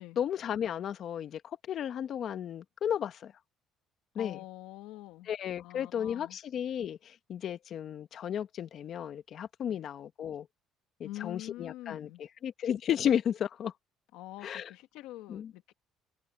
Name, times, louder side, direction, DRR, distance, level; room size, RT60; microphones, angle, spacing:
voice 1, 0.2-1.4 1.7-3.3 4.1-4.4 5.3-10.5 11.0-12.1 12.4-13.7 14.4-14.7 15.3-15.5, left 9 dB, 50° left, 1.4 m, -33 dB
voice 2, 4.1-5.3 5.6-6.4 9.7-9.9 11.0-12.2 14.1-15.7, left 16 dB, 85° left, 1.9 m, -45 dB
cardioid pair, 120°, 0 cm